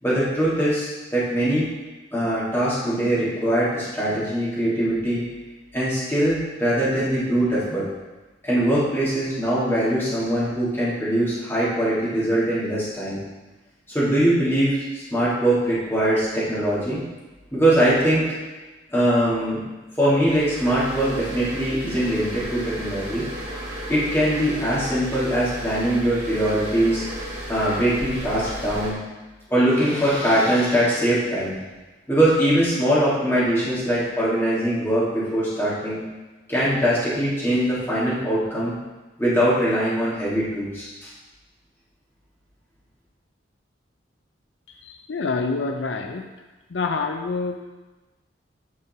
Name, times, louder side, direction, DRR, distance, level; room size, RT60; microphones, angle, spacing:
voice 1, 0.0-1.7 2.1-5.2 5.7-7.9 8.4-13.2 13.9-17.0 17.5-18.4 18.9-19.6 20.0-23.2 23.9-27.0 27.5-29.0 29.5-31.5 32.1-36.0 36.5-38.7 39.2-41.1, right 1 dB, 15° left, -10 dB, 2.7 m, -22 dB
sound 1, 20.1-28.9, right 1 dB, 40° right, 2.5 m, -34 dB
voice 2, 44.7-46.3 46.7-47.6, left 4 dB, 80° left, 5 dB, 0.6 m, -27 dB
9.5 x 4.9 x 4.5 m, 1.2 s
head